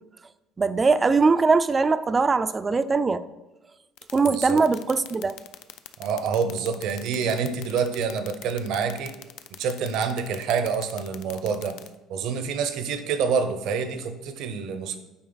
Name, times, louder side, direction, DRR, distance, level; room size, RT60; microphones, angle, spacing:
voice 1, 0.6-3.2 4.1-5.4, right 4 dB, 20° right, 13 dB, 0.3 m, -21 dB
sound 1, 4.0-11.9, left 14 dB, 80° left, 0.4 m, -41 dB
voice 2, 4.3-4.6 6.0-9.2 9.6-11.8 12.1-15.0, right 6 dB, 70° right, 9 dB, 0.7 m, -27 dB
8.7 x 4.2 x 3.9 m, 1.0 s
cardioid pair, 120°, 0 cm